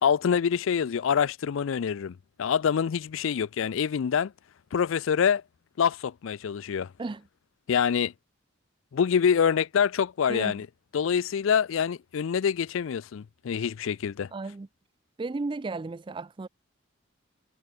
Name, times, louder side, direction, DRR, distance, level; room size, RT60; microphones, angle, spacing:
voice 1, 0.0-4.3 4.7-5.4 5.8-6.9 7.7-8.1 8.9-10.7 10.9-14.3, left 7 dB, 70° left, 0.4 m, -26 dB
voice 2, 14.3-14.7 15.2-16.5, right 3 dB, 25° right, 0.3 m, -34 dB
head